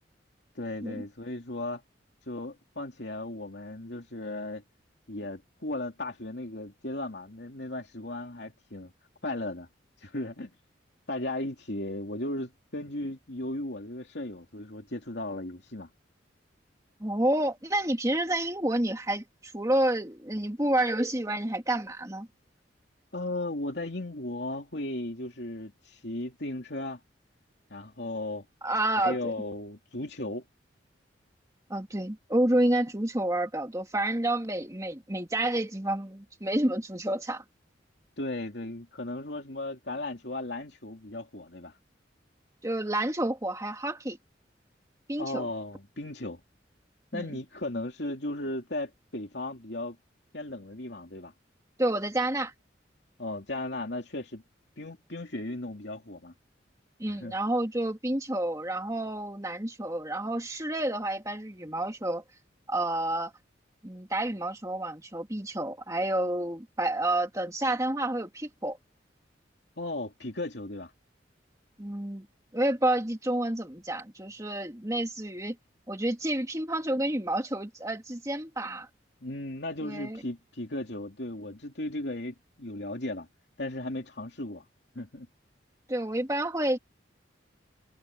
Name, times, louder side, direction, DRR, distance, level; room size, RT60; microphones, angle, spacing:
voice 1, 0.5-1.8 2.3-4.6 5.1-8.9 9.2-9.7 10.0-10.5 11.1-15.9 23.1-27.0 27.7-28.4 29.0-30.4 38.2-41.7 45.2-46.4 47.1-50.0 50.3-51.3 53.2-54.4 54.8-56.3 57.1-57.4 69.8-70.9 78.6-78.8 79.2-83.3 83.6-84.6 84.9-85.3, left 1 dB, 65° left, 3.0 m, -36 dB
voice 2, 17.0-22.3 28.6-29.3 31.7-37.4 42.6-44.2 45.1-45.5 47.1-47.3 51.8-52.5 57.0-62.2 62.7-63.3 63.8-68.8 71.8-72.3 72.5-75.6 75.9-78.9 79.8-80.2 85.9-86.8, right 1 dB, 15° right, 2.2 m, -29 dB
head